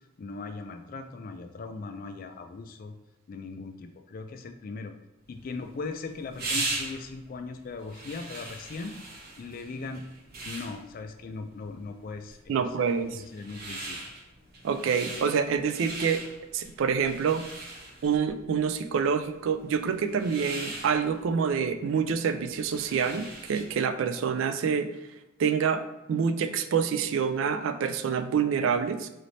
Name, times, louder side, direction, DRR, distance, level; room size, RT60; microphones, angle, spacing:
voice 1, 0.2-3.0 3.3-5.0 5.3-9.0 9.4-10.1 10.4-12.4 13.1-14.0, left 4 dB, 40° left, 7 dB, 0.3 m, -39 dB
sound 1, 5.3-23.9, right 2 dB, 45° right, 0.7 m, -40 dB
voice 2, 12.5-13.2 14.6-16.2 16.5-17.4 18.0-24.9 25.4-25.8 26.1-29.1, right 6 dB, 65° right, 10 dB, 0.3 m, -27 dB
4.0 x 3.2 x 2.6 m, 1.0 s
head